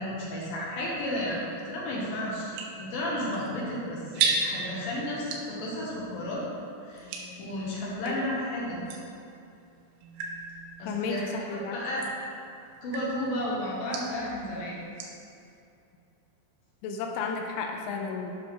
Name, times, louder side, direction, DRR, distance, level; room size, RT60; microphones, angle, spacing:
voice 1, 0.0-2.5 2.8-6.4 6.8-8.8 10.8-12.0 12.8-14.8, left 1 dB, 65° left, -6 dB, 2.5 m, -33 dB
sound 1, 1.0-8.2 8.9-15.3, right 4 dB, 85° right, 3.1 m, -37 dB
voice 2, 7.0-7.5 8.0-8.2 10.9-11.8 16.8-18.3, left 5 dB, 85° left, 2 dB, 3.1 m, -34 dB
10.5 x 5.6 x 3.7 m, 2.6 s
omnidirectional pair, 5.6 m